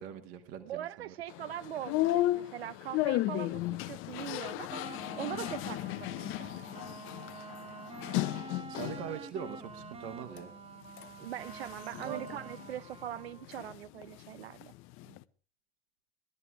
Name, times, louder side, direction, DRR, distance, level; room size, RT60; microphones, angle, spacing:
voice 1, 0.0-1.1 8.7-10.5 12.0-12.2 15.0-15.2, right 8 dB, 50° right, 1.8 m, -42 dB
voice 2, 0.6-4.8 5.2-6.5 11.2-14.7, right 11 dB, 70° right, 0.7 m, -41 dB
sound 1, 1.3-9.2 9.6-10.4 10.9-13.8 14.0-15.2, left 16 dB, 40° left, 0.6 m, -35 dB
sound 2, 4.7-13.5, right 5 dB, 20° right, 0.9 m, -48 dB
18.0 x 12.5 x 4.8 m
figure-of-eight pair, 70°, 33 cm